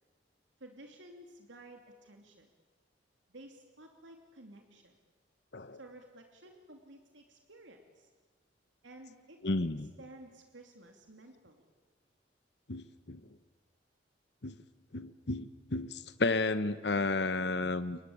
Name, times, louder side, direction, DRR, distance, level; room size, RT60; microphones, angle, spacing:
voice 1, 0.6-2.5 3.3-5.0 5.8-8.1 8.8-9.7 10.0-11.7, right 1 dB, 90° right, 4 dB, 2.9 m, -53 dB
voice 2, 9.4-9.9 12.7-13.2 14.4-14.5 14.9-18.0, left 3 dB, 65° left, 12 dB, 1.1 m, -32 dB
29.0 x 23.0 x 8.7 m, 1.3 s
head